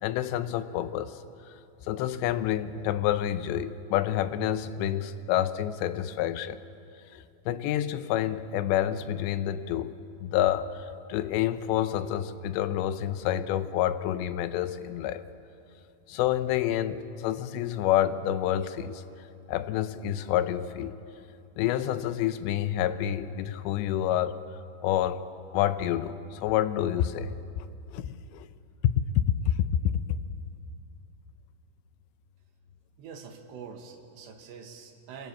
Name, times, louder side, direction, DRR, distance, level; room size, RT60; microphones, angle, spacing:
voice 1, 0.0-1.2 1.9-6.6 7.1-9.9 10.2-15.2 16.1-19.0 19.5-21.0 21.6-24.4 24.8-25.2 25.5-27.3 27.6-28.5 29.2-29.5 29.8-29.9, left 11 dB, 85° left, 12 dB, 3.1 m, -28 dB
voice 2, 33.0-35.3, right 6 dB, 80° right, 4 dB, 4.0 m, -45 dB
26.5 x 25.5 x 7.3 m, 2.6 s
omnidirectional pair, 5.0 m